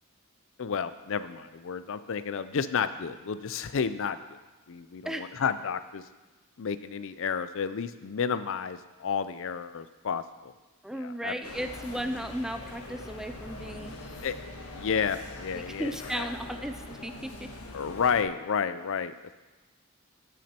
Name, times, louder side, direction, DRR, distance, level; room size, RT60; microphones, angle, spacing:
voice 1, 0.6-4.2 4.7-6.0 6.6-10.5 10.9-11.3 14.2-14.4 14.7-16.3 17.7-19.1, left 6 dB, 60° left, 13 dB, 0.5 m, -31 dB
voice 2, 5.0-5.5 10.8-14.0 15.5-17.5, equal, ahead, 7 dB, 0.3 m, -35 dB
sound 1, 11.4-18.2, left 2 dB, 85° left, 1.3 m, -43 dB
15.0 x 6.2 x 4.4 m, 1.2 s
head